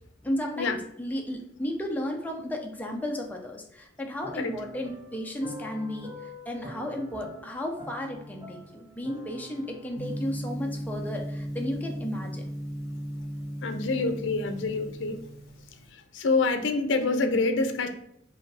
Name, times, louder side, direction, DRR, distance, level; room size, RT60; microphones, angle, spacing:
voice 1, 0.2-6.1 6.5-12.4, left 1 dB, 10° left, 1 dB, 0.6 m, -34 dB
sound 1, 4.2-10.6, right 1 dB, 20° right, 1.4 m, -45 dB
Gong, 10.0-15.8, equal, 55° left, 1.0 m, -36 dB
voice 2, 13.6-15.2 16.1-17.9, left 3 dB, 85° left, 7 dB, 0.5 m, -26 dB
4.6 x 2.6 x 3.3 m, 0.74 s
head